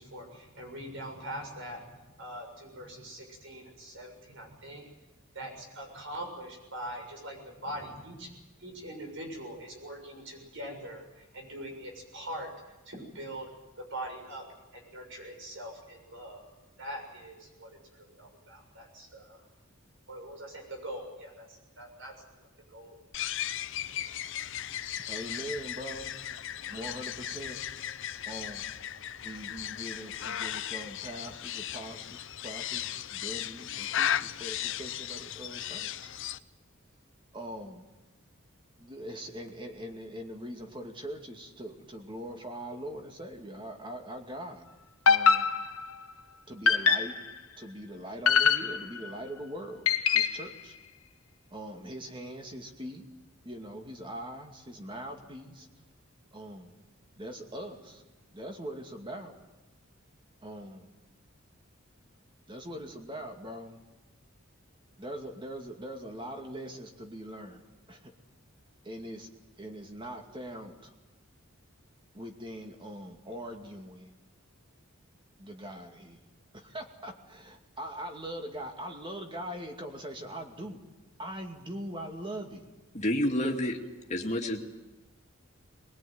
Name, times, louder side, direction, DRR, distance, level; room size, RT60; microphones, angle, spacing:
voice 1, 0.0-4.8 5.3-13.5 13.8-14.5 14.7-16.4 16.8-19.5 20.1-22.1 22.4-23.0, right 1 dB, 65° right, 3 dB, 7.3 m, -43 dB
sound 1, 23.1-36.4, left 10 dB, 60° left, 0.7 m, -36 dB
voice 2, 25.1-26.1 26.7-27.6 28.3-28.7 29.2-36.1 37.3-37.8 38.8-44.6 45.1-45.6 46.5-47.1 47.6-49.8 50.1-50.7 51.5-53.1 53.4-55.7 56.3-56.8 57.2-58.0 58.3-59.3 60.4-60.9 62.5-63.8 65.0-68.1 68.8-69.3 69.6-70.9 72.1-74.2 75.4-80.8 81.2-82.6 83.4-83.5, right 1 dB, 25° right, 4 dB, 2.4 m, -42 dB
sound 2, 45.1-46.0 46.7-47.3 48.3-49.1 49.9-50.5, left 6 dB, 85° left, 1.3 m, -24 dB
voice 3, 82.9-83.8 84.1-84.6, left 1 dB, 35° left, 2 dB, 2.3 m, -29 dB
22.0 x 21.0 x 9.4 m, 1.1 s
head